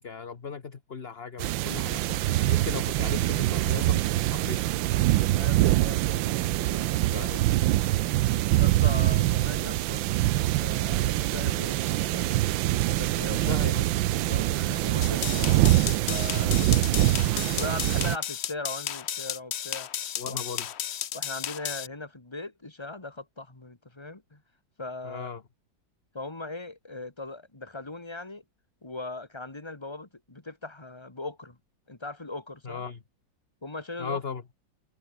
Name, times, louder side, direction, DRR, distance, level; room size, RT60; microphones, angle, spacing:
voice 1, 0.0-4.6 7.0-7.5 13.2-13.9 16.3-16.7 20.2-20.7 25.0-25.4 32.6-33.0 34.0-34.4, left 5 dB, 35° left, 1.4 m, -38 dB
sound 1, 1.4-18.2, right 15 dB, 80° right, 1.4 m, -24 dB
voice 2, 5.3-7.3 7.9-8.2 8.6-10.0 10.6-13.4 14.3-16.6 17.4-19.9 20.2-20.4 21.1-24.4 24.8-25.3 26.1-28.4 28.8-31.6 31.9-32.8 33.6-34.2, left 2 dB, 15° left, 2.3 m, -40 dB
sound 2, 15.0-21.9, left 10 dB, 80° left, 0.5 m, -34 dB
omnidirectional pair, 2.1 m